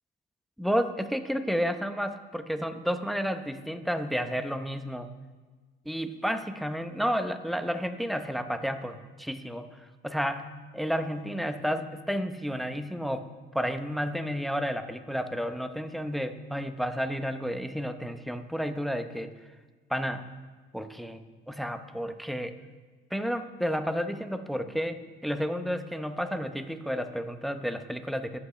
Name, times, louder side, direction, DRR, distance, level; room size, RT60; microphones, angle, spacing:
voice 1, 0.6-5.1 5.8-13.3 13.5-19.3 19.9-20.2 20.7-22.5 23.1-28.4, equal, ahead, 8 dB, 0.8 m, -31 dB
21.5 x 8.3 x 3.3 m, 1.4 s
cardioid pair, 90°, 20 cm